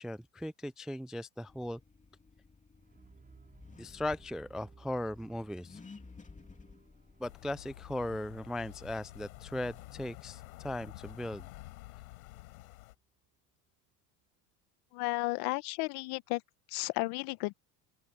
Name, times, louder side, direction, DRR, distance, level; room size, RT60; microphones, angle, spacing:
voice 1, 0.0-1.8 3.8-5.8 7.2-11.5, left 1 dB, ahead, 0.3 m, -38 dB
Accelerating revving vroom, 1.5-8.8, left 4 dB, 15° left, 2.8 m, -55 dB
sound 1, 2.8-12.8, right 4 dB, 20° right, 5.7 m, -62 dB
sound 2, 7.2-12.9, left 20 dB, 80° left, 5.0 m, -50 dB
voice 2, 14.9-16.4 16.7-17.6, left 25 dB, 65° left, 1.4 m, -33 dB
open air
hypercardioid pair, 90°, 42 cm